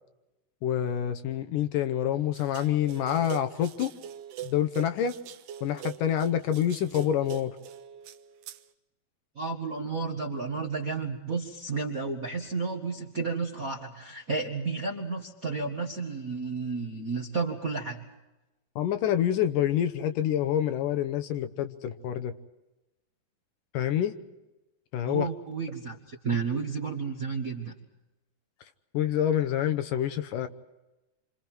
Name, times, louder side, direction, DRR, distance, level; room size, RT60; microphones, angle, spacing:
voice 1, 0.6-3.9 4.4-5.2 5.6-7.6 18.8-22.3 23.7-24.1 24.9-25.3 28.9-30.5, left 10 dB, 75° left, 9 dB, 2.5 m, -27 dB
sound 1, 2.3-8.6, right 12 dB, 75° right, 2.3 m, -42 dB
voice 2, 9.3-18.0 25.0-27.7, right 4 dB, 40° right, 1 dB, 1.2 m, -32 dB
28.0 x 27.0 x 4.6 m, 1.0 s
omnidirectional pair, 4.1 m